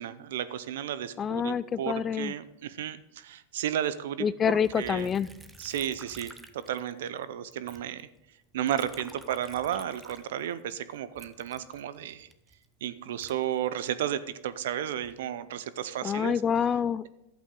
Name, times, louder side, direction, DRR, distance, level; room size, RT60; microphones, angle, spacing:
voice 1, 0.0-5.1 5.6-8.1 8.5-12.3 12.8-16.4, right 10 dB, 75° right, 15 dB, 0.6 m, -33 dB
voice 2, 1.2-2.3 4.2-5.3 16.0-17.1, left 7 dB, 25° left, 19 dB, 0.3 m, -27 dB
Liquid, 4.6-7.2 7.5-10.7 11.1-14.2 14.7-15.3, right 2 dB, 10° right, 0.7 m, -51 dB
11.5 x 8.2 x 3.8 m, 0.89 s
hypercardioid pair, 120°, 0 cm